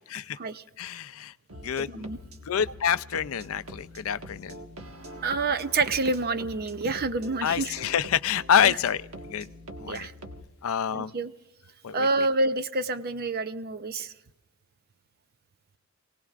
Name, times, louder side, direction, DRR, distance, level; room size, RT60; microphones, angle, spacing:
voice 1, 0.8-1.3 1.6-2.1 2.5-4.6 7.4-9.0 9.3-9.5 9.8-10.1 10.6-11.1 11.8-12.1, left 8 dB, 70° left, 15 dB, 0.4 m, -27 dB
sound 1, 1.5-10.4, equal, 75° right, 1.6 m, -44 dB
voice 2, 1.8-2.2 5.2-7.8 8.6-8.8 9.9-10.1 10.9-11.3 11.9-14.1, right 3 dB, 45° right, 11 dB, 0.7 m, -28 dB
28.0 x 18.0 x 2.5 m, 1.0 s
head